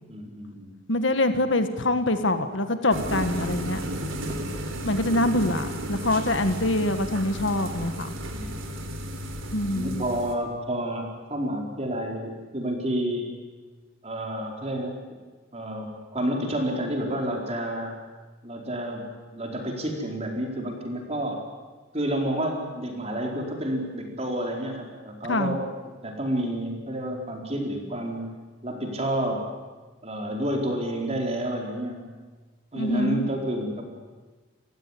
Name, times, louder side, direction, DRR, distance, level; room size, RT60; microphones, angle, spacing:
voice 1, 0.1-0.7 5.2-5.3 8.3-8.8 9.7-13.4 14.0-15.0 15.5-17.9 18.4-21.4 21.9-25.6 26.0-28.3 28.6-29.4 30.0-32.1 32.7-33.8, right 1 dB, 30° right, 1 dB, 4.6 m, -30 dB
voice 2, 0.9-3.9 4.8-8.1 9.5-10.0 25.3-25.6 32.7-33.3, left 1 dB, 65° left, 9 dB, 1.7 m, -25 dB
sound 1, 2.9-10.4, equal, 75° right, 3.8 m, -33 dB
29.5 x 15.5 x 10.0 m, 1.3 s
head